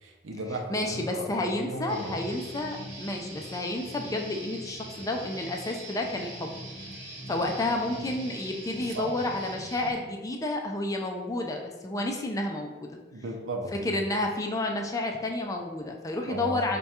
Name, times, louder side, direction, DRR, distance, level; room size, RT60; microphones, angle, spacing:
voice 1, 0.0-2.2 7.4-7.5 8.0-8.1 8.8-9.1 13.1-13.9 16.3-16.8, right 2 dB, 85° right, 3 dB, 0.6 m, -36 dB
voice 2, 0.7-6.6 7.3-13.0 13.8-16.8, left 2 dB, 15° left, 2 dB, 0.3 m, -30 dB
Guitar, 1.9-9.9, right 1 dB, 55° right, 0.9 m, -42 dB
3.5 x 2.2 x 4.2 m, 1.2 s
head